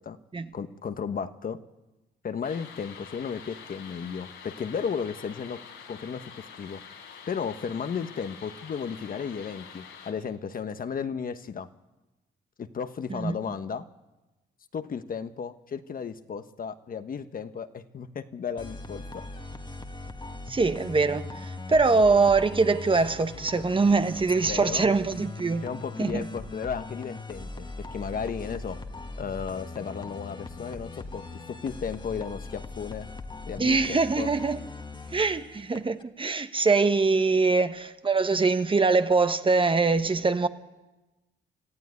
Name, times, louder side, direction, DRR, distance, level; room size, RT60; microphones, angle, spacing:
voice 1, 0.5-1.6 2.2-5.6 5.9-6.8 7.3-11.7 12.6-13.8 14.7-19.2 24.4-24.9 25.6-28.8 29.2-33.1 33.5-34.3, left 6 dB, 45° left, 1.2 m, -34 dB
sound 1, 2.4-10.1, left 7 dB, 90° left, 4.1 m, -46 dB
sound 2, 18.6-36.0, left 3 dB, 25° left, 1.6 m, -40 dB
voice 2, 20.5-25.7 26.0-26.3 33.6-34.6 35.1-40.5, right 4 dB, 25° right, 1.1 m, -23 dB
25.0 x 14.0 x 9.7 m
cardioid pair, 90°, 20 cm